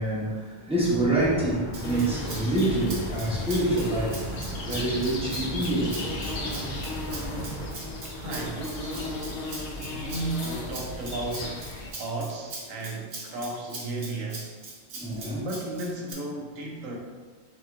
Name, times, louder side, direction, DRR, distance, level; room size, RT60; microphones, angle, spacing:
voice 1, 0.0-4.2 4.6-6.3 10.0-10.2 14.9-15.5, right 1 dB, 5° right, -7 dB, 0.9 m, -27 dB
sound 1, 0.8-7.7, equal, 15° left, 1.1 m, -36 dB
Rattle (instrument), 1.7-16.1, right 2 dB, 50° right, 1.0 m, -42 dB
sound 2, 1.8-11.9, left 2 dB, 55° left, 0.4 m, -36 dB
voice 2, 8.1-9.5 9.7-14.5 15.4-17.0, right 2 dB, 80° right, -1 dB, 1.2 m, -34 dB
6.9 x 3.0 x 2.4 m, 1.4 s
omnidirectional pair, 1.4 m